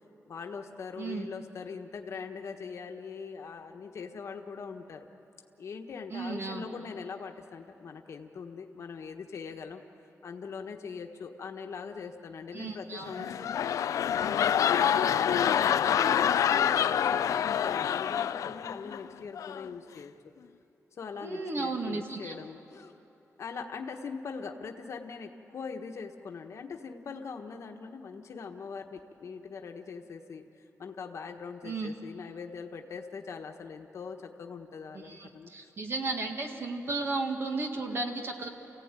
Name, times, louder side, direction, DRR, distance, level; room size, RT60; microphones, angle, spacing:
voice 1, 0.3-5.1 5.6-9.8 10.2-13.8 14.2-20.1 20.9-22.9 23.4-30.4 30.8-35.7, left 5 dB, 60° left, 4 dB, 1.3 m, -41 dB
voice 2, 1.0-1.3 6.1-6.7 12.5-13.3 21.2-22.4 31.6-31.9 35.0-38.5, right 3 dB, 50° right, 3 dB, 2.0 m, -34 dB
sound 1, 13.0-19.0 19.4-19.7, left 9 dB, 90° left, 0.4 m, -27 dB
29.0 x 16.0 x 9.1 m, 3.0 s
wide cardioid pair, 145°, 6 cm